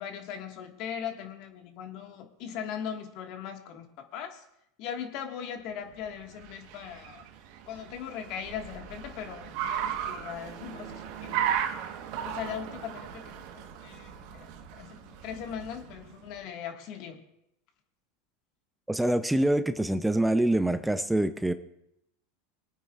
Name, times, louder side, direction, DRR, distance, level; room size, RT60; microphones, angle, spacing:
voice 1, 0.0-3.8 4.1-4.4 4.8-7.2 7.7-11.4 12.2-17.2, left 8 dB, 55° left, 4 dB, 1.7 m, -39 dB
Car, 6.0-16.3, right 9 dB, 60° right, 1.2 m, -36 dB
voice 2, 18.9-21.5, right 1 dB, 5° right, 11 dB, 0.5 m, -25 dB
23.0 x 9.2 x 2.4 m, 0.80 s
hypercardioid pair, 100°, 0 cm